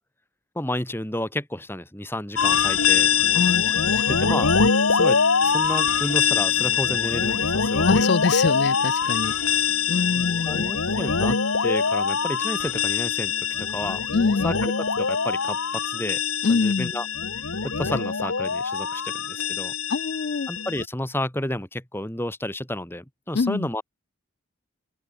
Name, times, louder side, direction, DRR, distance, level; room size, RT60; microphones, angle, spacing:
voice 1, 0.6-3.1 4.1-4.5 4.9-8.1 10.1-14.0 14.4-16.2 16.5-17.1 17.3-19.7 20.5-23.8, left 1 dB, 10° left, 2.1 m, -31 dB
sound 1, 2.4-20.8, left 6 dB, 75° left, 1.4 m, -23 dB
voice 2, 3.3-4.4 7.8-9.3 9.9-10.7 14.1-14.5 16.4-16.9 19.9-20.5 23.3-23.7, left 4 dB, 50° left, 0.4 m, -25 dB
open air
head